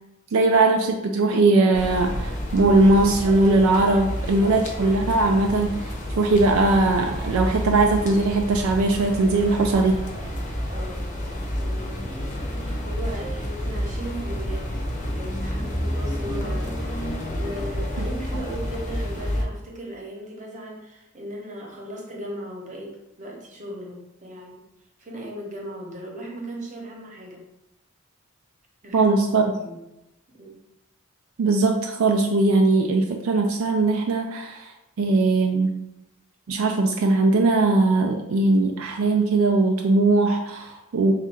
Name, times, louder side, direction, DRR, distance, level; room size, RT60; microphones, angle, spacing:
voice 1, 0.3-10.0 28.9-29.4 31.4-34.7 35.0-35.7 36.5-41.1, right 2 dB, 75° right, 3 dB, 0.4 m, -20 dB
sound 1, 1.7-19.4, equal, 35° left, 0.7 m, -30 dB
voice 2, 4.0-4.5 10.7-24.6 25.0-27.4 28.8-29.1 29.5-29.8 30.3-30.6, right 1 dB, 35° right, -1 dB, 0.9 m, -38 dB
3.5 x 2.4 x 4.2 m, 0.91 s
head